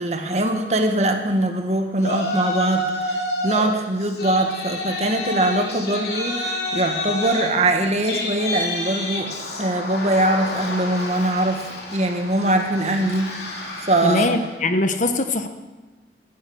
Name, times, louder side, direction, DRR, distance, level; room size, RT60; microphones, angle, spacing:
voice 1, 0.0-13.4 13.9-14.3, right 1 dB, 40° right, 5 dB, 1.7 m, -22 dB
Yell, 2.0-3.7 4.0-14.5, left 1 dB, 65° left, 3.1 m, -29 dB
voice 2, 14.0-15.5, left 2 dB, 45° left, 8 dB, 1.0 m, -21 dB
16.5 x 12.5 x 6.3 m, 1.2 s
head